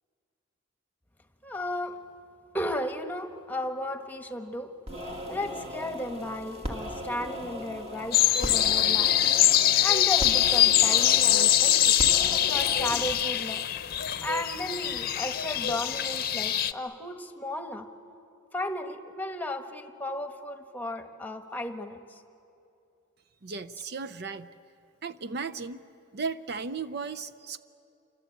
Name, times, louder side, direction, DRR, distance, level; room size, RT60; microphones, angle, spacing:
voice 1, 1.4-2.0 2.5-4.7 5.3-9.1 9.5-12.0 12.2-13.6 14.2-17.9 18.5-22.2, left 1 dB, 10° left, 6 dB, 1.3 m, -34 dB
sound 1, 4.9-13.2, equal, 30° right, 2.5 m, -38 dB
sound 2, 8.1-16.7, left 12 dB, 50° left, 0.7 m, -23 dB
voice 2, 23.4-24.5 25.0-25.8 26.1-27.6, right 4 dB, 55° right, 11 dB, 0.6 m, -35 dB
28.0 x 25.0 x 8.5 m, 2.7 s
head